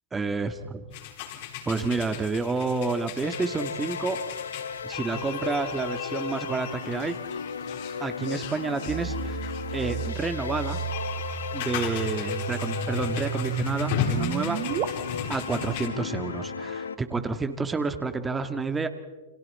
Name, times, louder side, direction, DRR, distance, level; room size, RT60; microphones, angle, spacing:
voice 1, 0.1-0.8 1.7-4.2 4.8-7.1 8.0-9.4 9.7-10.8 11.5-14.6 15.3-18.9, right 4 dB, 15° right, 8 dB, 1.8 m, -29 dB
sound 1, 0.9-15.9, left 9 dB, 55° left, 3.9 m, -37 dB
sound 2, 3.2-17.0, left 6 dB, 80° left, 1.1 m, -35 dB
sound 3, 8.9-14.9, right 9 dB, 40° right, 2.2 m, -33 dB
29.5 x 27.0 x 4.3 m, 1.2 s
figure-of-eight pair, 100°, 0 cm